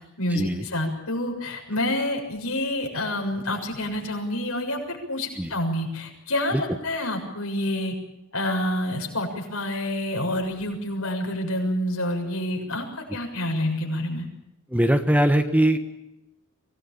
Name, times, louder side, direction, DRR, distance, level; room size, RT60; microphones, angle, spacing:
voice 1, 0.2-7.9 8.3-14.3, left 1 dB, 80° left, 3 dB, 6.9 m, -28 dB
voice 2, 14.7-15.8, right 1 dB, 5° right, 7 dB, 1.2 m, -20 dB
24.0 x 19.5 x 8.7 m, 0.94 s
head